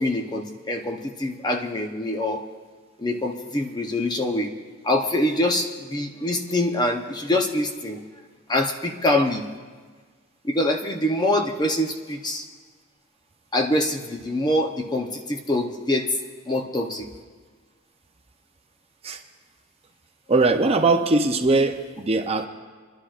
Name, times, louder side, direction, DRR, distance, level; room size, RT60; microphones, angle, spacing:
voice 1, 0.0-2.4 3.0-4.5 4.8-8.0 8.5-9.4 10.4-12.5 13.5-16.2 16.5-17.1, left 1 dB, 20° left, 3 dB, 0.7 m, -24 dB
voice 2, 20.3-22.5, right 3 dB, 30° right, 5 dB, 0.6 m, -20 dB
27.0 x 11.5 x 2.5 m, 1.5 s
head